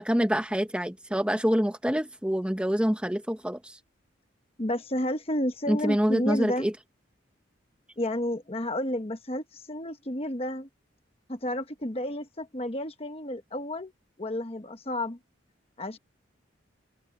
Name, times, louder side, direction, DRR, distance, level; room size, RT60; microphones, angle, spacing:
voice 1, 0.0-3.6 5.7-6.7, equal, 5° right, 1.1 m, -26 dB
voice 2, 4.6-6.7 8.0-10.7 11.3-13.9 14.2-15.2 15.8-16.0, left 1 dB, 30° left, 1.2 m, -31 dB
head